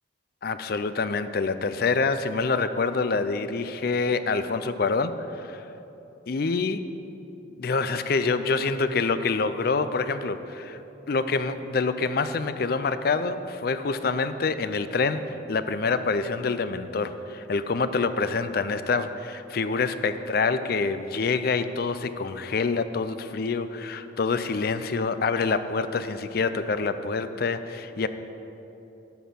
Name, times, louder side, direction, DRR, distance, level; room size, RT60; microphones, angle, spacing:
voice 1, 0.4-5.6 6.3-6.8 7.6-10.8 11.1-28.1, left 4 dB, 55° left, 11 dB, 0.4 m, -26 dB
12.0 x 4.3 x 7.7 m, 3.0 s
head